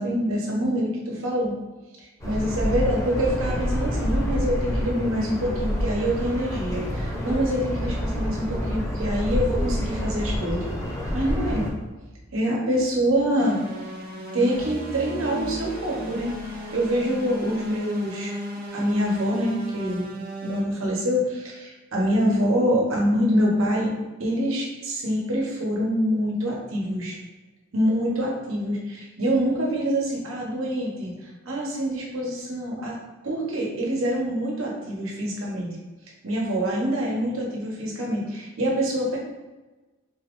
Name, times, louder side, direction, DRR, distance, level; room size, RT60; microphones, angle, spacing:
voice 1, 0.0-1.5 2.2-10.7 11.1-11.7 12.3-13.6 14.3-16.3 16.7-18.4 18.7-20.1 20.4-23.9 24.2-27.2 27.7-31.1 31.4-33.0 33.2-35.8 36.2-39.2, equal, 85° right, -3 dB, 1.1 m, -25 dB
sound 1, 2.2-11.7, equal, 15° left, 0.7 m, -27 dB
sound 2, 13.4-20.6, equal, 45° right, 1.0 m, -34 dB
4.0 x 2.5 x 3.6 m, 1.2 s
head